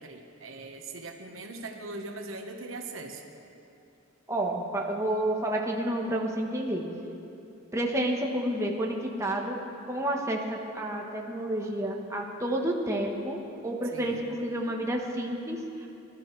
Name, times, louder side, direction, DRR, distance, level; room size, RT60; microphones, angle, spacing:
voice 1, 0.0-3.2 13.9-14.2, right 2 dB, 80° right, 3 dB, 1.2 m, -40 dB
voice 2, 4.3-6.9 7.7-9.6 9.9-15.9, right 1 dB, 15° right, 0 dB, 1.1 m, -30 dB
21.0 x 12.5 x 3.2 m, 2.8 s
head